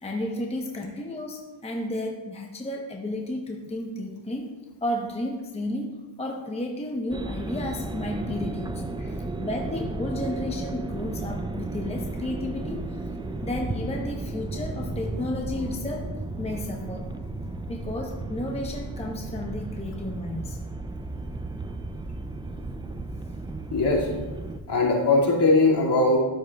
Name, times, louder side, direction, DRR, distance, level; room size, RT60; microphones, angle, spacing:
voice 1, 0.0-4.5 4.8-8.9 9.4-13.0 13.4-16.1 16.4-17.1 17.7-20.6 21.5-21.6, left 1 dB, 10° left, 1 dB, 0.8 m, -32 dB
sound 1, 7.1-24.6, right 2 dB, 10° right, 0.4 m, -34 dB
voice 2, 23.7-24.1 24.7-26.2, left 2 dB, 55° left, -3 dB, 2.4 m, -20 dB
13.0 x 7.4 x 2.3 m, 1.3 s
cardioid pair, 95°, 50 cm